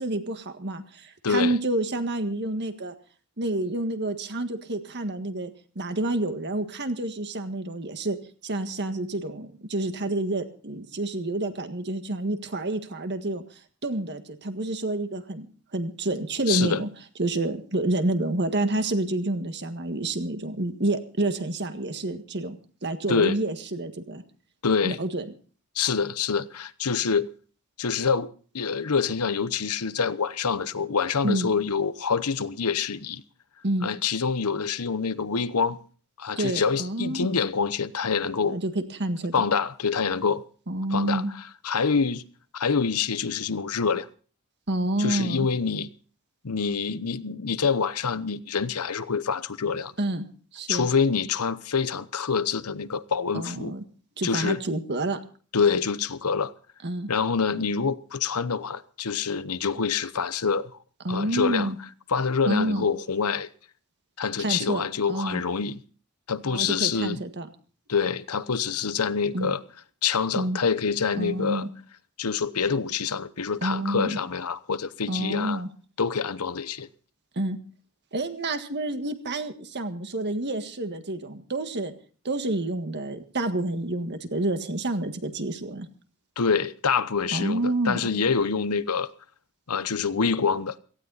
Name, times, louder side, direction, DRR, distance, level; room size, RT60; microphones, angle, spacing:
voice 1, 0.0-2.9 3.4-5.5 5.8-8.2 8.4-13.4 13.8-15.5 15.7-16.9 17.2-24.2 24.8-25.3 31.2-31.5 33.6-33.9 36.4-37.4 38.5-39.5 40.7-41.3 44.7-45.5 50.0-50.3 50.5-50.9 53.3-53.8 54.2-55.2 56.8-57.1 61.0-61.8 62.5-62.9 64.4-64.8 65.1-65.4 66.5-67.5 69.3-69.5 70.4-70.6 71.2-71.7 73.6-74.2 75.1-75.7 77.4-77.6 78.1-81.9 82.3-85.9 87.3-88.1, right 2 dB, 50° right, 1.7 m, -28 dB
voice 2, 1.2-1.5 16.5-16.8 23.1-23.4 24.6-25.0 25.7-27.3 27.8-33.2 33.8-35.8 36.2-38.6 39.3-40.4 40.9-41.2 41.6-42.2 42.5-44.1 45.0-45.9 46.4-49.9 50.7-53.7 54.2-54.6 55.5-56.5 57.1-60.7 61.1-61.7 62.1-63.5 64.2-65.8 66.3-67.2 67.9-69.6 70.0-71.7 72.2-75.6 76.0-76.9 86.4-89.1 89.7-90.7, left 5 dB, 85° left, 0.9 m, -26 dB
17.5 x 15.5 x 4.1 m
head